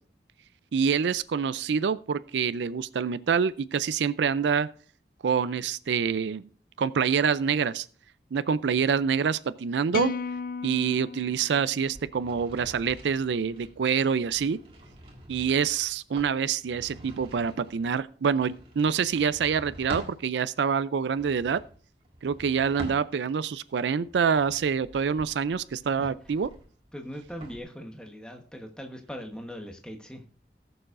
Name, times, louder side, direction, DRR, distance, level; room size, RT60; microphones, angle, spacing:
voice 1, 0.7-4.7 5.2-6.5 6.8-7.9 8.3-10.1 10.6-14.6 15.3-21.6 22.2-26.5, right 6 dB, 90° right, 15 dB, 0.4 m, -26 dB
sound 1, 9.9-12.3, left 5 dB, 50° left, 0.3 m, -35 dB
sound 2, 11.9-20.2 21.0-23.5 24.0-27.6, right 1 dB, 30° right, 2.0 m, -46 dB
voice 2, 26.9-30.2, equal, 5° left, 3 dB, 1.1 m, -40 dB
19.0 x 6.9 x 2.5 m, 0.43 s
head